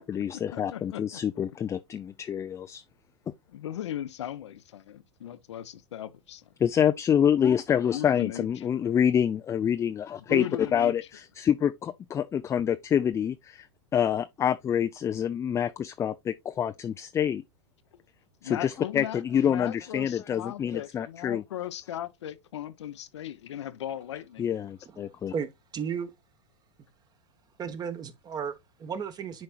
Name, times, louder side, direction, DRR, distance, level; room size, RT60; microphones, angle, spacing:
voice 1, 0.0-2.8 6.6-10.5 10.7-13.7 13.9-17.4 18.4-21.4 24.4-25.3, left 9 dB, 20° left, 0.4 m, -27 dB
voice 2, 0.5-1.0 3.5-6.5 7.9-8.8 10.3-11.0 18.4-24.7, left 11 dB, 75° left, 0.7 m, -37 dB
voice 3, 25.0-25.5 25.7-26.1 27.6-29.4, right 7 dB, 25° right, 1.1 m, -34 dB
10.5 x 4.3 x 2.3 m
hypercardioid pair, 100°, 15 cm